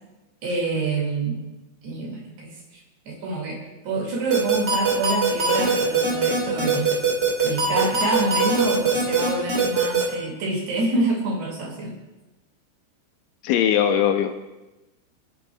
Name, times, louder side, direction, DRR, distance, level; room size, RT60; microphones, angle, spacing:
voice 1, 0.4-1.4 1.8-6.9 7.4-11.9, right 2 dB, 60° right, -1 dB, 3.8 m, -27 dB
sound 1, 4.3-10.0, right 5 dB, 30° right, 2.5 m, -21 dB
voice 2, 13.4-14.4, left 9 dB, 80° left, 7 dB, 2.8 m, -20 dB
29.0 x 10.5 x 2.3 m, 1.0 s
omnidirectional pair, 5.9 m